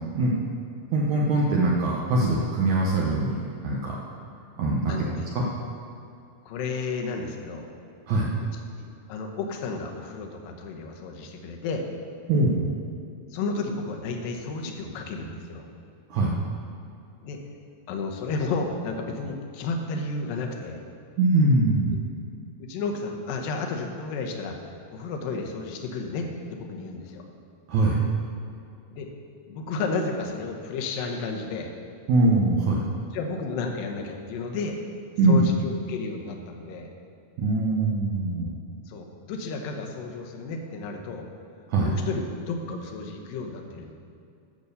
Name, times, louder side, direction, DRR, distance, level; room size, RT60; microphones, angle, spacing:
voice 1, 0.9-4.0 4.6-4.9 5.4-5.5 8.1-8.3 12.3-12.7 16.1-16.3 21.2-22.0 27.7-28.0 32.1-32.8 35.2-35.5 37.4-38.5 41.7-41.9, right 2 dB, 70° right, -3 dB, 1.9 m, -22 dB
voice 2, 4.9-5.2 6.5-7.7 8.4-11.9 13.3-15.7 17.2-17.4 17.9-20.8 21.9-22.1 22.6-24.6 24.9-27.2 28.9-29.1 29.5-31.7 33.1-34.8 35.2-36.9 38.9-41.3 41.8-43.9, left 4 dB, 75° left, 2 dB, 2.6 m, -32 dB
9.1 x 7.0 x 6.8 m, 2.5 s
omnidirectional pair, 4.2 m